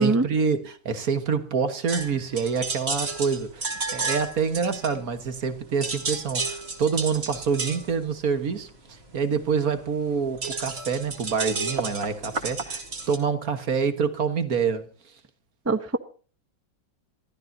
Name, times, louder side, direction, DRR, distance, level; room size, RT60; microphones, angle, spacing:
voice 1, 0.0-14.9, right 6 dB, 50° right, 1.7 m, -26 dB
sound 1, 1.9-5.5 5.7-13.2, right 3 dB, 35° right, 2.3 m, -32 dB
voice 2, 15.7-16.0, right 3 dB, 15° right, 0.5 m, -21 dB
27.0 x 13.5 x 2.8 m
omnidirectional pair, 2.1 m